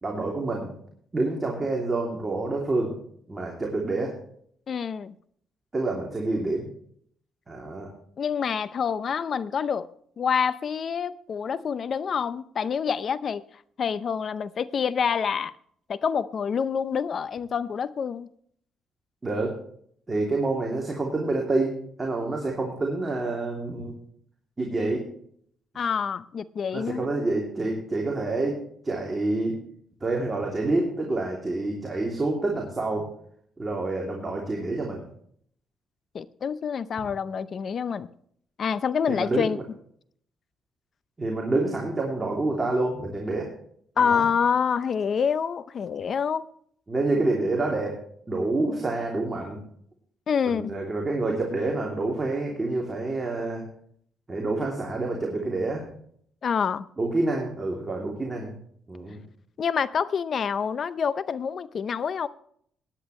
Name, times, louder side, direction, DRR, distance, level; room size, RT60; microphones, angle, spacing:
voice 1, 0.0-0.7 1.1-2.9 3.3-4.1 5.7-6.7 7.5-7.9 19.2-19.5 20.1-24.0 24.6-25.0 26.7-29.6 30.0-33.1 33.6-35.0 39.1-39.5 41.2-43.5 44.0-44.3 46.9-48.0 48.3-49.6 50.5-53.6 54.3-55.9 57.0-58.6 58.9-59.2, right 2 dB, 25° right, 2.9 m, -27 dB
voice 2, 4.7-5.1 8.2-9.9 10.2-13.4 13.8-15.5 15.9-18.3 25.7-27.1 36.1-38.1 38.6-39.6 44.0-46.4 50.3-50.7 56.4-56.8 59.6-62.3, left 7 dB, 50° left, 0.6 m, -27 dB
17.5 x 10.0 x 3.2 m
cardioid pair, 90°, 0 cm